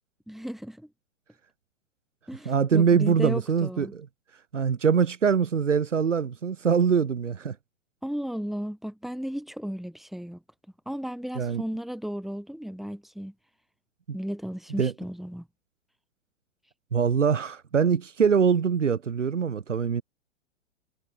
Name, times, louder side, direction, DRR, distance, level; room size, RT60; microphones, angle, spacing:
voice 1, 0.3-0.9 2.3-3.9 8.0-10.4 10.9-13.3 14.1-15.5, equal, ahead, 2.3 m, -34 dB
voice 2, 2.5-4.1 4.5-7.5 11.4-11.6 14.1-14.2 14.8-14.9 16.9-20.0, right 6 dB, 70° right, 2.4 m, -23 dB
figure-of-eight pair, 110°, 38 cm